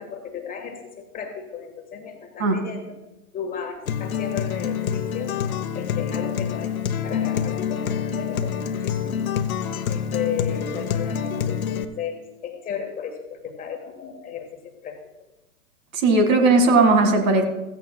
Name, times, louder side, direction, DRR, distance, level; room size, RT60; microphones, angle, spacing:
voice 1, 0.0-2.9 3.3-5.3 5.7-6.8 7.0-9.3 9.9-15.0, left 7 dB, 20° left, 3 dB, 1.5 m, -34 dB
Acoustic guitar, 3.9-11.8, left 8 dB, 65° left, 1.0 m, -26 dB
voice 2, 15.9-17.4, right 3 dB, 60° right, 6 dB, 2.1 m, -17 dB
15.5 x 15.0 x 2.3 m, 0.99 s
hypercardioid pair, 120°, 45 cm